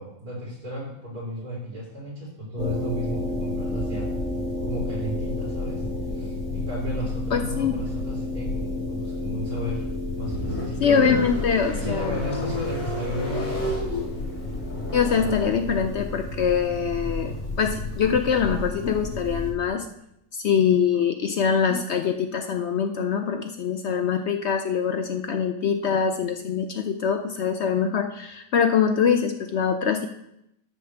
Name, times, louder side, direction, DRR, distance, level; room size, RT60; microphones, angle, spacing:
voice 1, 0.0-4.1 4.6-5.8 6.1-9.8 10.2-11.2 11.7-13.9, equal, 80° right, -6 dB, 4.3 m, -33 dB
sound 1, 2.6-19.5, left 2 dB, 85° left, 4.1 m, -31 dB
voice 2, 7.3-7.8 10.8-12.2 14.9-19.9 20.3-30.1, left 7 dB, 60° left, 6 dB, 0.7 m, -24 dB
sound 2, 9.8-19.7, left 1 dB, 40° left, 4.0 m, -34 dB
12.5 x 6.7 x 3.4 m, 0.80 s
omnidirectional pair, 1.6 m